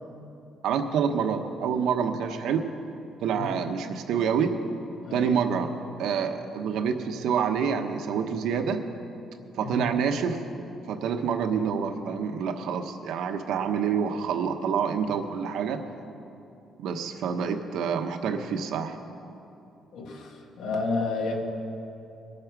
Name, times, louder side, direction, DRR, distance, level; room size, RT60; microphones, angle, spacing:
voice 1, 0.6-2.6 3.2-4.5 5.1-5.7 6.0-8.8 9.6-10.4 10.9-15.8 16.8-19.0, right 7 dB, 80° right, 6 dB, 1.1 m, -27 dB
voice 2, 5.0-5.3 9.6-9.8 19.9-21.3, left 3 dB, 85° left, 1 dB, 2.1 m, -31 dB
22.5 x 8.6 x 6.0 m, 2.9 s
cardioid pair, 180°, 0 cm